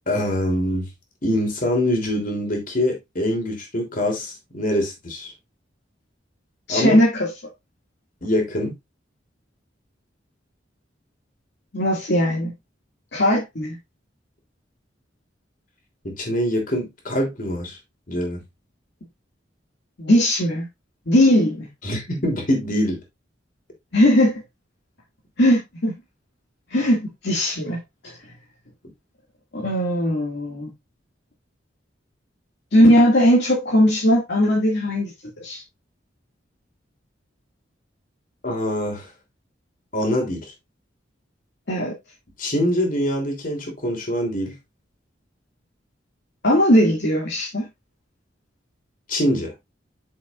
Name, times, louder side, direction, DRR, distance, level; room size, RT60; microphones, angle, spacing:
voice 1, 0.1-0.9 1.2-5.3 6.7-7.0 8.2-8.7 16.0-17.8 18.1-18.4 21.8-23.0 38.4-39.1 39.9-40.5 42.4-44.5 49.1-49.5, left 1 dB, 50° left, 3.2 m, -24 dB
voice 2, 6.7-7.3 11.7-12.5 13.1-13.8 20.0-20.7 21.1-21.7 23.9-24.3 25.4-25.9 26.7-27.8 28.0-28.1 29.5-30.7 32.7-35.1 35.4-35.6 41.7-41.9 46.4-47.7, equal, 65° left, 2.2 m, -18 dB
8.6 x 7.0 x 2.5 m
head